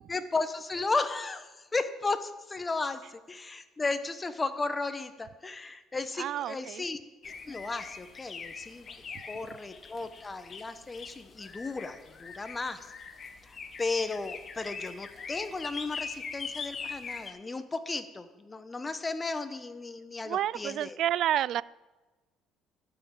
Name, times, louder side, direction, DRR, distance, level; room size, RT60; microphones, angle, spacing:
voice 1, 0.1-7.0 7.5-8.9 9.2-12.9 13.4-21.0, left 3 dB, 20° left, 10 dB, 1.0 m, -34 dB
voice 2, 6.2-6.8 20.2-21.6, right 12 dB, 60° right, 21 dB, 0.3 m, -29 dB
sound 1, 7.2-17.3, left 5 dB, 35° left, 1.2 m, -42 dB
12.5 x 6.2 x 8.8 m, 1.2 s
cardioid pair, 120°, 0 cm